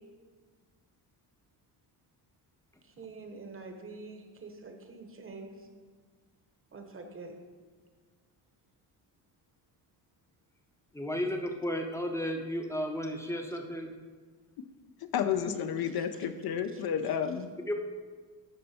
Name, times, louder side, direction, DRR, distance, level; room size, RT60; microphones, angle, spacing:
voice 1, 3.0-5.6 6.7-7.4 15.9-16.1 16.7-16.8, right 3 dB, 30° right, 4 dB, 0.9 m, -46 dB
voice 2, 10.9-13.9 17.7-17.8, equal, 5° left, 3 dB, 0.7 m, -33 dB
voice 3, 15.0-17.5, left 8 dB, 60° left, 9 dB, 0.5 m, -31 dB
11.0 x 4.3 x 4.1 m, 1.5 s
cardioid pair, 125°, 43 cm